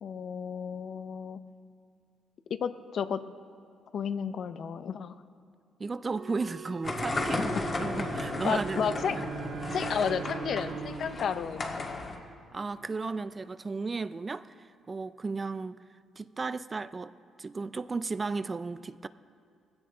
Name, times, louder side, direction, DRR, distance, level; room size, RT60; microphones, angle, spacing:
voice 1, 0.0-1.4 2.5-3.2 3.9-5.1 8.4-9.2 9.7-12.1, left 7 dB, 60° left, 11 dB, 0.6 m, -32 dB
voice 2, 5.8-8.9 12.5-15.8 16.2-17.1 17.4-19.1, right 4 dB, 30° right, 14 dB, 0.4 m, -34 dB
sound 1, 6.1-13.3, right 3 dB, 60° right, 1.0 m, -46 dB
sound 2, 6.8-12.2, left 2 dB, 35° left, 1.6 m, -35 dB
Bowed string instrument, 7.3-12.5, right 7 dB, 75° right, 0.8 m, -42 dB
17.5 x 15.5 x 3.8 m, 2.3 s
cardioid pair, 90°, 0 cm